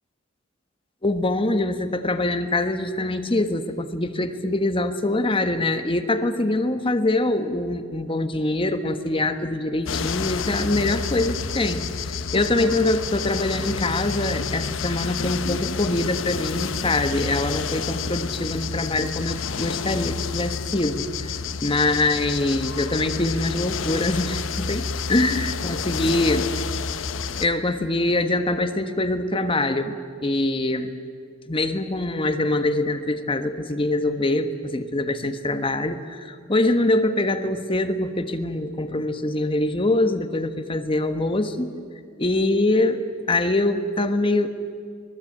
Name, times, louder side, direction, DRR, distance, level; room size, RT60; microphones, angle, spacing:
voice 1, 1.0-21.3 21.6-26.4 27.4-30.9 31.5-41.7 42.2-44.5, left 2 dB, 25° left, 8 dB, 1.3 m, -24 dB
sound 1, 9.9-27.5, left 5 dB, 85° left, 0.8 m, -29 dB
25.0 x 19.0 x 8.7 m, 2.2 s
head